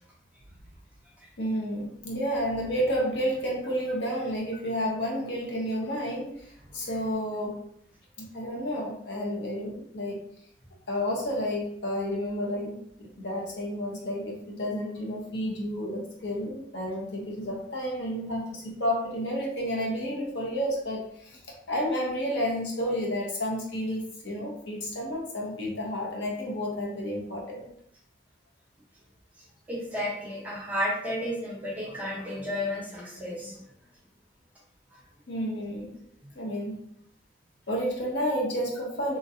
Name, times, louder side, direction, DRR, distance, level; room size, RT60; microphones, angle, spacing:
voice 1, 1.4-7.6 8.2-10.2 10.9-27.7 35.3-36.0 36.3-36.8 37.7-39.2, equal, 70° left, -2 dB, 0.8 m, -31 dB
voice 2, 29.7-33.6 36.2-36.3, left 1 dB, 10° right, -7 dB, 0.9 m, -32 dB
3.0 x 2.5 x 2.6 m, 0.69 s
head